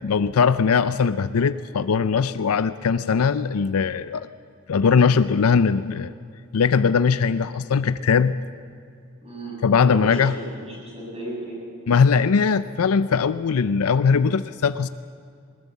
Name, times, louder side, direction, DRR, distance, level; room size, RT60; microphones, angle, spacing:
voice 1, 0.0-4.3 4.7-6.1 6.5-8.3 9.6-10.3 11.9-14.9, left 5 dB, 85° left, 13 dB, 0.5 m, -20 dB
voice 2, 9.2-11.6, right 1 dB, 30° right, -3 dB, 7.7 m, -35 dB
20.0 x 19.5 x 8.3 m, 2.3 s
head